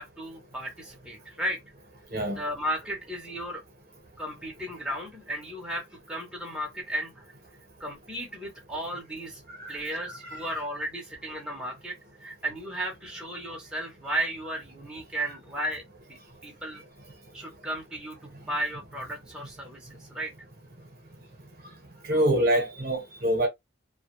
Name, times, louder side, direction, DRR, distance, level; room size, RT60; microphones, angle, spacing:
voice 1, 0.0-1.6 2.4-3.6 4.2-7.2 7.8-9.4 9.7-11.9 12.2-15.8 16.1-16.8 17.3-20.3, right 1 dB, 5° right, 0.7 m, -34 dB
voice 2, 9.6-10.5 22.1-23.5, right 1 dB, 50° right, 0.8 m, -26 dB
2.2 x 2.1 x 2.9 m
head